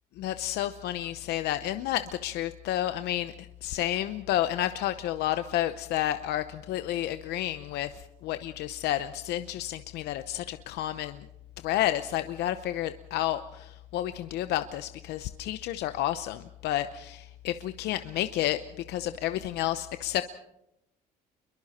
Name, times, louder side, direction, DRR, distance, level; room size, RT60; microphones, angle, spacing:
voice 1, 0.2-3.3 3.6-11.3 11.6-18.6 18.9-20.2, left 13 dB, 80° left, 11 dB, 0.8 m, -30 dB
29.0 x 22.5 x 4.3 m, 0.84 s
cardioid pair, 110°, 17 cm